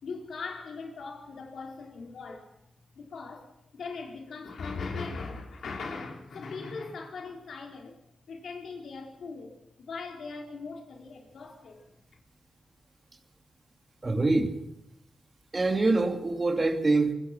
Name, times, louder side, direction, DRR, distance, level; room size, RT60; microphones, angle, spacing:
voice 1, 0.0-2.5 3.0-8.0 8.3-11.9 12.1-12.2, left 4 dB, 70° left, 1 dB, 4.2 m, -40 dB
voice 2, 14.0-14.6 15.5-17.1, right 3 dB, 25° right, 5 dB, 2.8 m, -25 dB
25.5 x 21.0 x 6.0 m, 0.88 s
wide cardioid pair, 115°, 0 cm